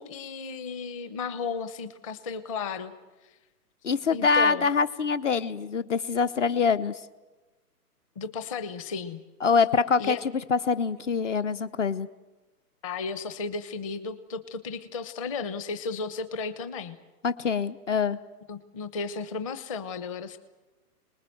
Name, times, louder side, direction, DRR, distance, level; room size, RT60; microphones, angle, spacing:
voice 1, 0.0-2.9 4.1-4.7 8.2-9.2 10.0-10.2 12.8-17.0 18.5-20.4, left 4 dB, 20° left, 12 dB, 0.9 m, -34 dB
voice 2, 3.8-7.0 9.4-10.2 10.5-12.1 17.2-18.2, left 5 dB, 50° left, 16 dB, 0.9 m, -24 dB
27.5 x 20.0 x 7.8 m, 1.2 s
hypercardioid pair, 155°, 48 cm